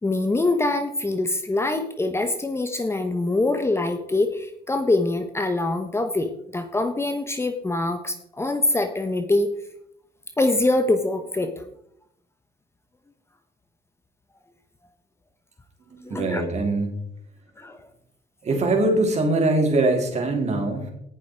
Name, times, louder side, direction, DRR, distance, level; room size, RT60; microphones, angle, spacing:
voice 1, 0.0-9.5 10.4-11.6 16.1-16.5 17.6-17.8, left 2 dB, 15° left, 7 dB, 1.1 m, -24 dB
voice 2, 15.8-17.0 18.4-20.9, right 2 dB, 40° right, 2 dB, 4.0 m, -22 dB
18.0 x 7.2 x 4.8 m, 0.74 s
cardioid pair, 110°, 17 cm